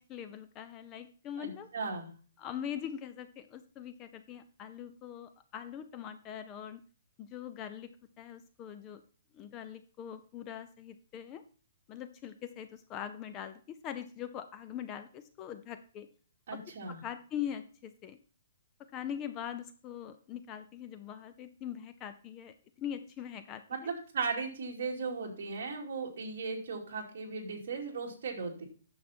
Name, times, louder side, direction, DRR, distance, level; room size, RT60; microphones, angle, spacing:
voice 1, 0.0-1.7 2.4-6.8 7.2-7.9 8.2-9.0 9.3-11.4 11.9-16.1 16.5-16.6 17.0-18.2 18.9-23.9, left 9 dB, 15° left, 10 dB, 0.4 m, -42 dB
voice 2, 1.4-2.1 16.5-17.0 23.8-28.6, right 4 dB, 45° right, -1 dB, 2.6 m, -37 dB
9.6 x 7.0 x 4.3 m, 0.40 s
hypercardioid pair, 175°, 0 cm